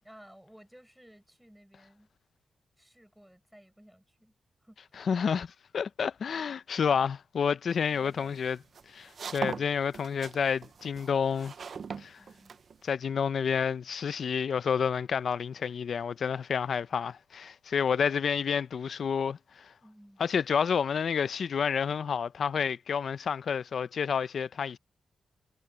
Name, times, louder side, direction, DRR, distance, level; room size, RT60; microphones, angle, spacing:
voice 1, 0.0-2.1 2.8-5.1 7.8-8.4 12.2-12.6 19.8-20.2, equal, 5° right, 6.4 m, -56 dB
voice 2, 5.1-8.6 8.9-11.5 12.0-12.2 12.8-19.7 20.2-24.8, left 6 dB, 55° left, 0.5 m, -29 dB
sound 1, 7.8-12.9, right 6 dB, 50° right, 0.6 m, -40 dB
wide cardioid pair, 180°, 0 cm